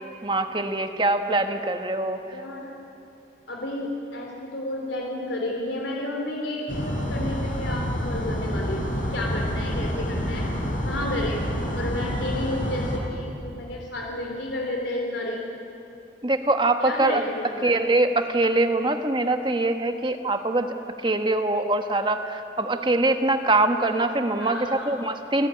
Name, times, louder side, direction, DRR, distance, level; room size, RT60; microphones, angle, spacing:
voice 1, 0.2-2.2 16.2-17.2 17.6-20.7 21.0-25.5, right 2 dB, 25° right, 6 dB, 1.3 m, -23 dB
voice 2, 2.2-2.7 3.5-10.5 10.9-11.4 11.7-15.4 16.8-17.8 24.4-25.0, left 1 dB, 85° left, -1 dB, 3.5 m, -31 dB
sound 1, 6.7-13.0, equal, 45° left, 4.9 m, -28 dB
29.0 x 17.5 x 9.9 m, 2.7 s
head